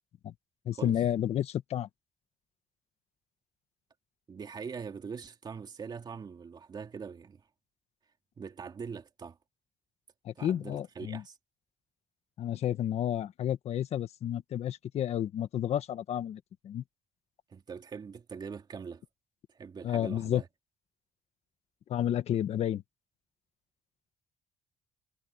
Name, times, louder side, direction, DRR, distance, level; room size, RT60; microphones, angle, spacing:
voice 1, 0.6-1.9 10.2-11.2 12.4-16.8 19.8-20.4 21.9-22.8, left 10 dB, 65° left, 1.6 m, -31 dB
voice 2, 4.3-7.4 8.4-9.4 10.4-11.4 17.5-19.0 19.5-20.5, right 6 dB, 40° right, 2.7 m, -42 dB
cardioid pair, 115°, 12 cm